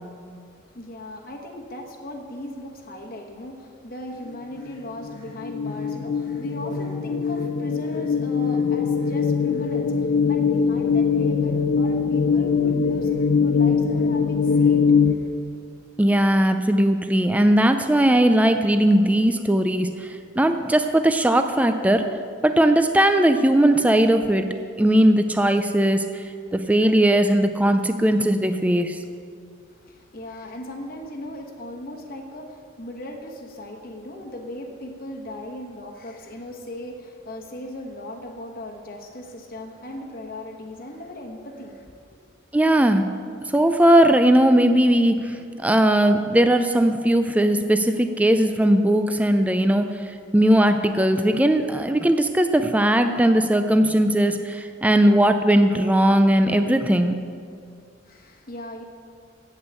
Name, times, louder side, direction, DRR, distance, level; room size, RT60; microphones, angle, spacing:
voice 1, 0.1-15.3 29.7-42.2 58.0-58.8, left 1 dB, 50° left, 1 dB, 1.1 m, -38 dB
sound 1, 4.6-15.1, left 5 dB, 80° left, 0.5 m, -22 dB
voice 2, 16.0-22.1 22.4-24.5 24.8-26.2 26.5-29.0 42.5-43.1 43.5-45.3 45.6-49.9 50.3-57.2, right 1 dB, 10° right, 7 dB, 0.4 m, -18 dB
8.6 x 8.0 x 8.2 m, 2.3 s
head